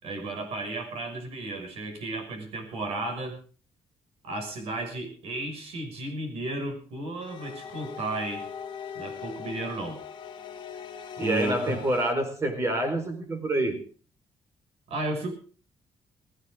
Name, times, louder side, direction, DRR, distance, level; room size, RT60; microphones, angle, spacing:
voice 1, 0.0-3.4 4.2-8.5 8.9-10.0 11.2-11.8 14.9-15.3, right 2 dB, 65° right, 6 dB, 5.9 m, -33 dB
sound 1, 7.2-12.1, left 7 dB, 45° left, 2.0 m, -40 dB
voice 2, 11.2-13.8, right 1 dB, 25° right, 7 dB, 4.4 m, -27 dB
19.0 x 17.0 x 3.7 m, 0.41 s
cardioid pair, 160°, 11 cm